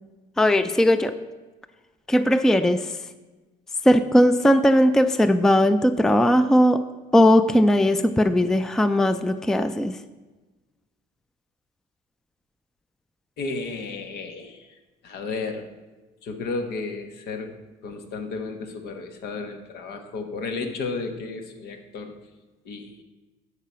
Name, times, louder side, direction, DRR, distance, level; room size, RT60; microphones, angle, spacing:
voice 1, 0.4-1.1 2.1-2.9 3.8-6.8 7.1-10.0, equal, 5° left, 12 dB, 0.4 m, -18 dB
voice 2, 13.4-14.8 15.0-15.7 16.2-22.2 22.6-23.0, left 3 dB, 75° left, 6 dB, 1.3 m, -33 dB
12.0 x 5.0 x 5.7 m, 1.2 s
cardioid pair, 110°, 17 cm